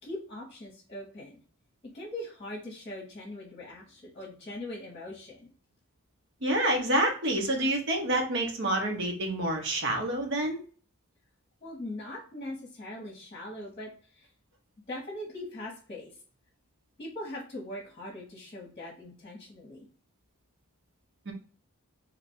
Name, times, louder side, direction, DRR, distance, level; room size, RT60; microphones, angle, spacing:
voice 1, 0.0-1.4 1.8-5.5 11.6-14.3 14.9-16.1 17.0-19.9, left 1 dB, 25° left, -3 dB, 1.1 m, -41 dB
voice 2, 6.4-10.6 21.3-21.4, right 1 dB, 55° right, 2 dB, 1.0 m, -28 dB
2.9 x 2.5 x 4.2 m, 0.41 s
head